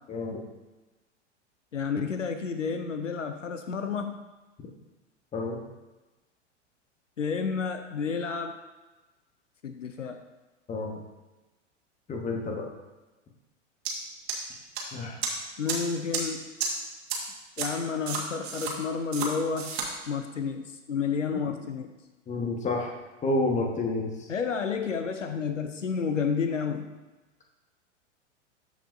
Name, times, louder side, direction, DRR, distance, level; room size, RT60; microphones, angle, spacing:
voice 1, 0.1-0.4 5.3-5.6 10.7-11.0 12.1-12.7 14.9-15.2 22.3-22.9 23.2-24.3, left 2 dB, 20° left, 1 dB, 1.3 m, -29 dB
voice 2, 1.7-4.2 7.2-8.6 9.6-10.2 15.6-16.5 17.6-19.8 20.1-21.9 24.3-27.0, left 5 dB, 85° left, 7 dB, 0.6 m, -30 dB
sound 1, 13.8-13.9 14.3-14.8 15.2-15.3 15.7-15.8 16.1-16.2 16.6-16.7 17.1-17.2 17.6-17.7 18.1-18.7 19.1-19.3 19.6-19.9, right 7 dB, 55° right, 1.7 m, -30 dB
13.0 x 5.0 x 2.6 m, 1.1 s
figure-of-eight pair, 95°, 37 cm